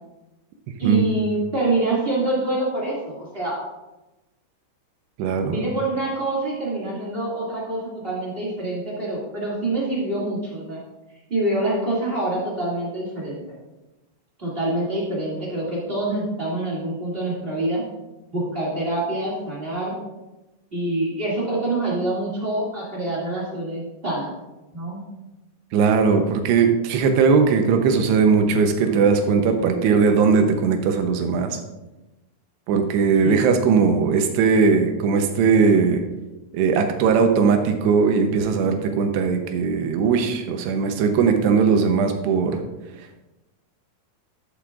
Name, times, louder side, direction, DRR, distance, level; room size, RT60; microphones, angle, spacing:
voice 1, 0.8-3.6 5.4-10.8 11.3-13.5 14.4-17.8 18.3-20.0 20.7-24.3 24.7-25.0 33.2-33.4, right 2 dB, 25° right, -6 dB, 1.4 m, -26 dB
voice 2, 5.2-5.5 25.7-31.6 32.7-36.0 36.5-42.6, right 5 dB, 90° right, 5 dB, 3.0 m, -19 dB
12.0 x 7.7 x 2.5 m, 1.0 s
omnidirectional pair, 4.7 m